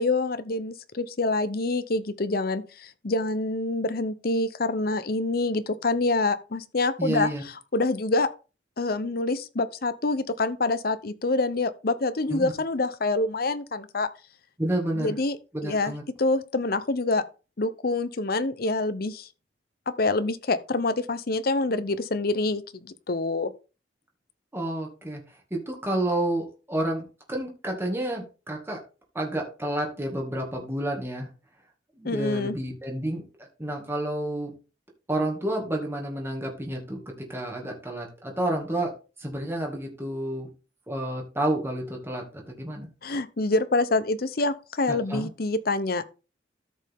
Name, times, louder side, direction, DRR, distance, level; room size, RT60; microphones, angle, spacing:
voice 1, 0.0-7.3 7.7-8.3 8.8-14.1 15.0-15.4 15.6-15.9 16.2-17.2 17.6-19.3 19.9-23.5 32.0-32.6 43.0-46.1, left 2 dB, 55° left, 0.8 m, -26 dB
voice 2, 7.0-7.4 12.3-12.5 14.6-15.2 15.5-16.0 24.5-25.2 25.5-28.8 29.1-31.3 32.0-34.5 35.1-38.9 39.2-40.5 40.9-42.9 44.9-45.3, right 1 dB, 15° right, 2.0 m, -30 dB
13.5 x 5.4 x 3.6 m
head